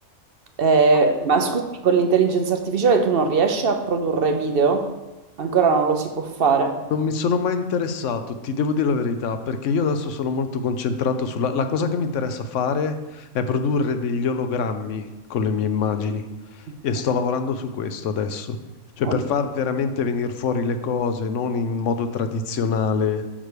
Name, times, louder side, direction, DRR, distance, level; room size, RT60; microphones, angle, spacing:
voice 1, 0.6-4.9 5.4-6.8 19.0-19.2, right 4 dB, 50° right, 6 dB, 0.8 m, -20 dB
voice 2, 6.9-15.0 15.3-16.2 16.5-18.6 19.0-23.2, left 5 dB, 65° left, 9 dB, 0.9 m, -24 dB
8.9 x 3.3 x 6.6 m, 1.1 s
omnidirectional pair, 1.5 m